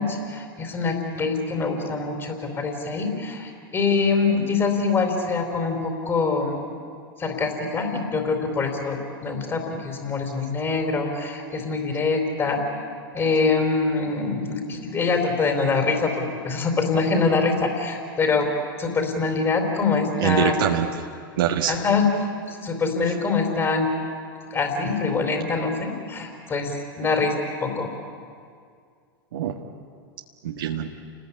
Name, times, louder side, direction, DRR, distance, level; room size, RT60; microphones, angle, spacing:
voice 1, 0.0-6.6 7.2-12.6 13.1-18.5 18.8-20.6 21.7-22.1 22.5-23.9 24.5-27.3 27.6-27.9, left 4 dB, 25° left, 1 dB, 4.1 m, -24 dB
voice 2, 20.2-21.1 21.4-21.8 29.3-29.5 30.4-30.9, right 10 dB, 70° right, 1 dB, 1.6 m, -24 dB
29.0 x 20.5 x 8.6 m, 2.2 s
hypercardioid pair, 100°, 12 cm